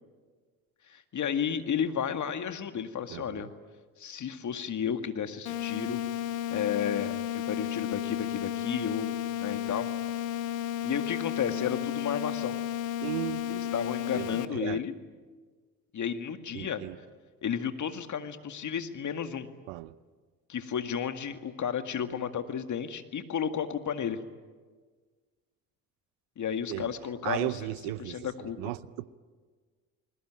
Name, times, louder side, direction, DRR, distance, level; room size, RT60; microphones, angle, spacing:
voice 1, 0.9-3.5 4.0-6.0 6.5-9.2 9.4-9.9 10.8-12.6 13.5-14.9 15.9-16.8 17.4-19.5 20.5-24.2 26.4-27.7 28.0-28.7, left 8 dB, 45° left, 2.1 m, -32 dB
voice 2, 3.1-3.5 13.0-13.7 14.1-14.8 16.5-17.0 19.7-20.0 26.7-26.9 27.2-29.1, right 18 dB, 75° right, 0.8 m, -36 dB
sound 1, 5.5-14.5, left 11 dB, 90° left, 1.0 m, -33 dB
28.5 x 21.0 x 9.2 m
hypercardioid pair, 55°, 39 cm